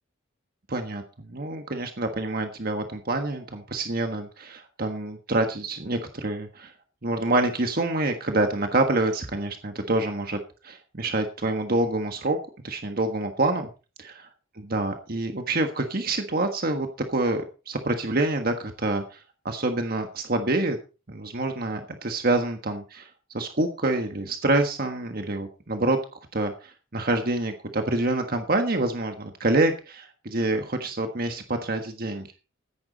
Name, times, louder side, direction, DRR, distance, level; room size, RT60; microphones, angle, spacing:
voice 1, 0.7-6.7 7.0-10.4 10.6-12.4 12.6-13.7 14.0-14.3 14.5-20.8 21.1-23.1 23.3-26.0 26.3-32.3, right 2 dB, 50° right, 5 dB, 1.5 m, -27 dB
14.5 x 10.5 x 4.1 m, 0.33 s
head